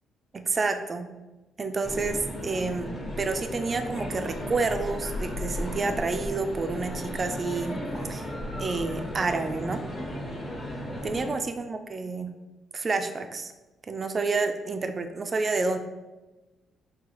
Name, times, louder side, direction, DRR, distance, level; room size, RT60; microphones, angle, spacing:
voice 1, 0.3-1.1 1.6-2.9 3.2-7.8 8.1-8.3 8.6-9.8 11.0-12.3 12.7-13.5 13.9-15.8, right 3 dB, 40° right, 7 dB, 0.4 m, -29 dB
sound 1, 1.8-11.3, equal, 35° left, 1.1 m, -35 dB
3.9 x 2.7 x 3.0 m, 1.1 s
supercardioid pair, 70°, 0 cm